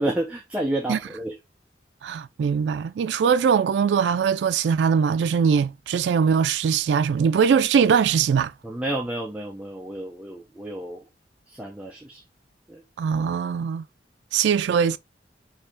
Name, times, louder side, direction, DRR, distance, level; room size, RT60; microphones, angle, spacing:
voice 1, 0.0-1.4 8.6-11.1 11.5-12.2 12.7-12.8, right 1 dB, 10° right, 0.6 m, -30 dB
voice 2, 2.0-8.5 13.0-13.8 14.3-15.0, right 6 dB, 80° right, 0.3 m, -21 dB
4.5 x 2.8 x 3.5 m
head